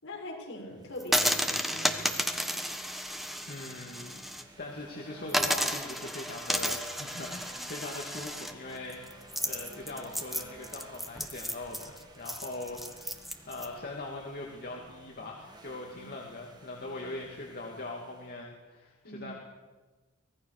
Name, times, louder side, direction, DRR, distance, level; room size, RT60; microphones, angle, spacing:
voice 1, 0.0-2.0 16.0-16.1 19.0-19.3, left 1 dB, 60° left, -1 dB, 6.4 m, -42 dB
sound 1, 0.7-18.5, right 2 dB, 20° right, 2.1 m, -54 dB
sound 2, 1.0-4.4 4.8-4.9 5.3-13.7, equal, ahead, 1.3 m, -32 dB
voice 2, 3.5-4.2 4.6-19.4, left 2 dB, 45° left, -1 dB, 2.6 m, -41 dB
24.5 x 19.5 x 6.8 m, 1.3 s
head